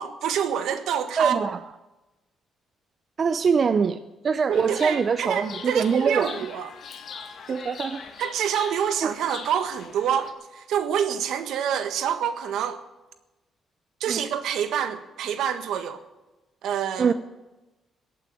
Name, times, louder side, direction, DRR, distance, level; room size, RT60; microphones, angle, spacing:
voice 1, 0.0-1.4 4.5-6.7 7.5-7.6 8.2-12.8 14.0-16.0 16.6-17.1, right 8 dB, 80° right, 10 dB, 1.5 m, -27 dB
voice 2, 1.2-1.6 3.2-4.0 4.2-6.4 7.5-8.0 9.0-9.1 14.1-14.2 17.0-17.1, right 5 dB, 45° right, 11 dB, 0.7 m, -23 dB
Chirp tweet, 4.5-10.3, left 6 dB, 55° left, 2.0 m, -41 dB
15.5 x 8.7 x 9.0 m, 1.1 s
cardioid pair, 90°, 0 cm